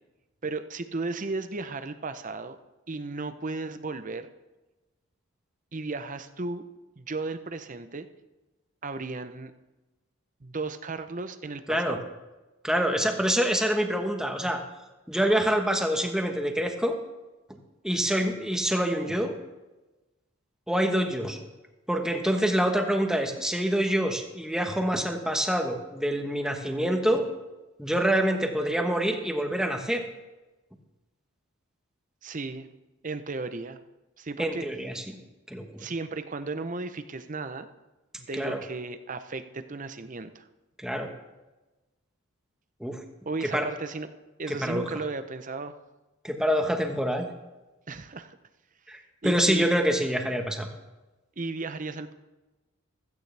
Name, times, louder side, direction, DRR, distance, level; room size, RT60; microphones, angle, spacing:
voice 1, 0.4-2.6 2.9-4.3 5.7-6.6 7.0-8.1 8.8-9.5 10.4-12.0 32.2-32.7 33.0-33.8 34.2-34.7 35.8-37.7 38.2-40.5 43.3-44.1 44.4-45.7 47.9-48.4 49.2-49.7 51.4-52.1, right 3 dB, 35° right, 10 dB, 0.7 m, -35 dB
voice 2, 12.6-14.6 15.1-17.0 17.8-19.3 20.7-21.4 21.9-27.2 27.8-30.0 34.4-35.0 35.5-35.6 38.4-38.6 40.8-41.1 42.8-43.0 43.5-43.6 44.5-44.8 46.2-47.3 48.9-50.7, equal, 5° right, 4 dB, 1.2 m, -26 dB
16.0 x 14.0 x 3.4 m, 1.1 s
head